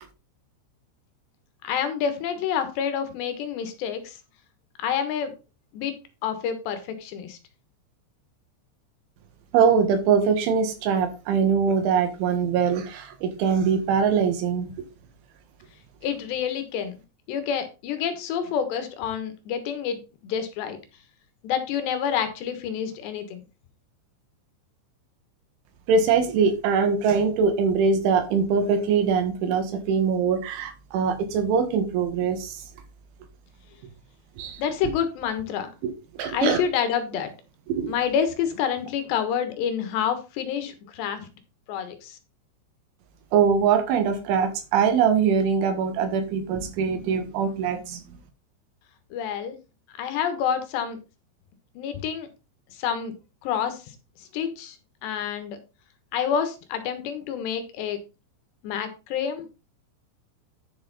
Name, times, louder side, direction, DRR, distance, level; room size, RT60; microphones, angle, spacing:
voice 1, 1.6-4.2 4.8-5.3 5.7-5.9 6.2-7.4 16.0-16.9 17.3-20.8 21.4-23.4 34.6-35.7 36.2-37.3 37.9-41.3 41.7-42.2 49.1-49.6 50.0-51.0 51.8-52.3 52.7-53.1 53.4-53.8 54.2-54.8 55.0-55.6 56.1-58.0 58.6-59.5, left 8 dB, 70° left, 9 dB, 3.3 m, -28 dB
voice 2, 9.5-14.9 25.9-32.6 34.4-34.6 35.8-36.6 37.7-38.0 43.3-48.0, right 6 dB, 90° right, 7 dB, 4.1 m, -22 dB
10.5 x 6.7 x 4.1 m, 0.30 s
omnidirectional pair, 5.3 m